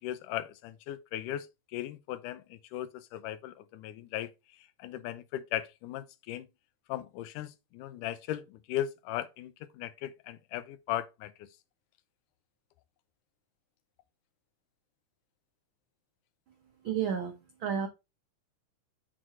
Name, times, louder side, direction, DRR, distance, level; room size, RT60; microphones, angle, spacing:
voice 1, 0.0-6.5 6.9-11.5, left 12 dB, 85° left, 2.2 m, -38 dB
voice 2, 16.8-17.9, right 7 dB, 85° right, 1.1 m, -32 dB
7.7 x 4.1 x 4.4 m
omnidirectional pair, 3.6 m